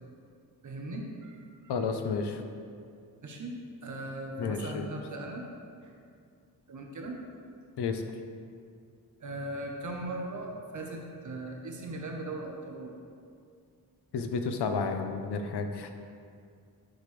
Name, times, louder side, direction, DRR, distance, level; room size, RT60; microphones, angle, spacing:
voice 1, 0.6-1.7 3.2-5.5 5.8-5.9 6.7-7.2 9.2-13.0, right 2 dB, 50° right, 0 dB, 1.0 m, -39 dB
voice 2, 1.7-2.4 4.4-4.8 7.8-8.0 14.1-15.9, left 5 dB, 80° left, 6 dB, 0.8 m, -31 dB
10.0 x 6.8 x 3.3 m, 2.3 s
wide cardioid pair, 140°, 40 cm